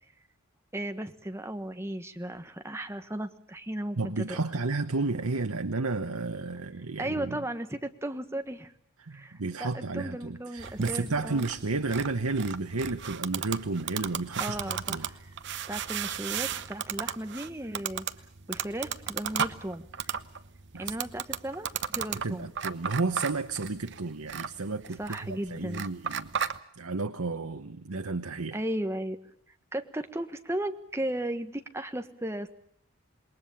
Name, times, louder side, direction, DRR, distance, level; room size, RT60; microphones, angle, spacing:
voice 1, 0.7-4.4 7.0-8.7 9.1-11.5 14.4-15.3 15.7-18.1 18.5-20.2 20.8-22.5 25.0-25.8 28.5-29.2 29.7-32.5, right 1 dB, 10° right, 7 dB, 1.3 m, -35 dB
voice 2, 4.0-7.4 9.0-15.1 20.7-20.9 22.2-26.4 26.8-28.6, right 3 dB, 85° right, 8 dB, 1.1 m, -32 dB
sound 1, 10.6-26.6, right 8 dB, 55° right, 0.9 m, -35 dB
27.5 x 21.0 x 7.1 m, 0.66 s
head